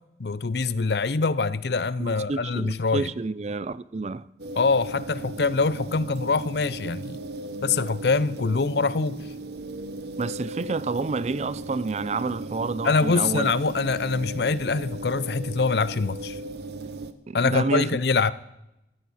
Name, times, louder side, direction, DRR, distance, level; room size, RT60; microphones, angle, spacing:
voice 1, 0.2-3.1 4.6-7.2 7.6-9.2 12.8-16.4 17.3-18.3, left 4 dB, 65° left, 0.6 m, -24 dB
voice 2, 2.0-4.3 10.2-13.5 17.3-17.9, right 3 dB, 40° right, 0.4 m, -29 dB
sound 1, 4.4-17.1, right 2 dB, 65° right, 1.0 m, -37 dB
17.0 x 14.0 x 4.2 m
head